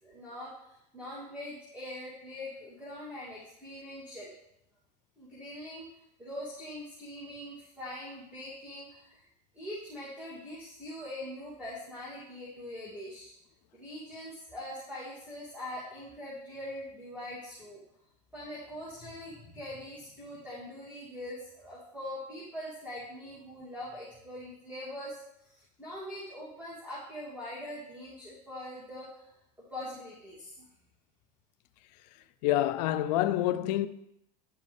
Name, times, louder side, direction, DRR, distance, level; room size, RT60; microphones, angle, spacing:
voice 1, 0.0-4.3 5.2-9.3 9.5-13.3 13.7-17.8 18.3-29.3 29.7-30.7, left 1 dB, 5° right, 2.6 m, -43 dB
voice 2, 32.4-33.9, left 13 dB, 70° left, 0.5 m, -27 dB
10.5 x 5.3 x 3.4 m
hypercardioid pair, 90°, 21 cm